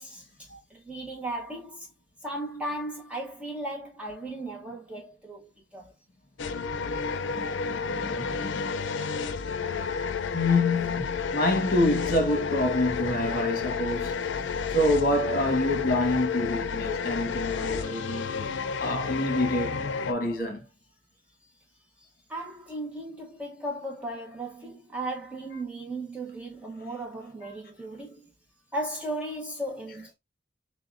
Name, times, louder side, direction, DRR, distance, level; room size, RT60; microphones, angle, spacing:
voice 1, 0.0-1.9 2.2-5.9 22.0-28.3 28.7-30.1, right 1 dB, 5° right, 0.8 m, -36 dB
sound 1, 6.4-20.1, left 5 dB, 75° left, 0.5 m, -31 dB
voice 2, 7.2-8.7 10.3-18.5 18.8-20.7, left 1 dB, 45° left, 1.2 m, -27 dB
6.6 x 2.2 x 2.4 m
head